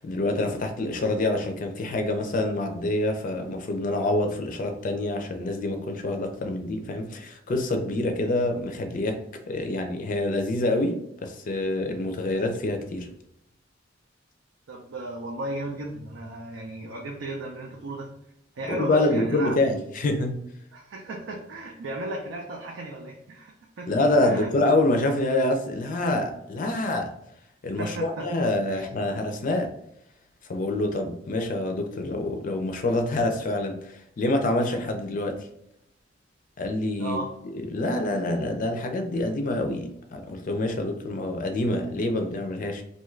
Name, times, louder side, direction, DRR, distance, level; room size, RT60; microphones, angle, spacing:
voice 1, 0.0-13.1 18.7-20.4 23.9-27.1 27.6-29.7 30.5-35.5 36.6-37.2 37.5-42.8, left 2 dB, 45° left, 0.4 m, -26 dB
voice 2, 14.7-18.1 18.6-19.6 20.7-23.9 24.2-24.5 27.8-28.4 28.7-28.9 37.0-37.3, right 2 dB, 85° right, 0.5 m, -35 dB
2.6 x 2.4 x 3.1 m
head